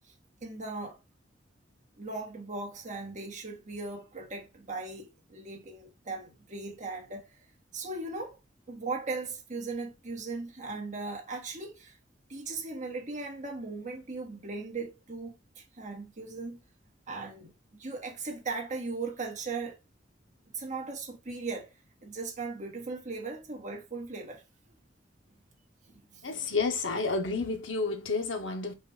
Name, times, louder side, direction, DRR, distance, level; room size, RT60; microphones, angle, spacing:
voice 1, 0.4-1.0 2.0-7.4 7.7-8.4 8.7-12.0 12.3-16.6 17.1-19.8 20.5-24.4 25.8-26.2, right 3 dB, 40° right, 1.4 m, -38 dB
voice 2, 26.2-28.7, left 3 dB, 85° left, 0.9 m, -30 dB
4.2 x 2.5 x 4.8 m
head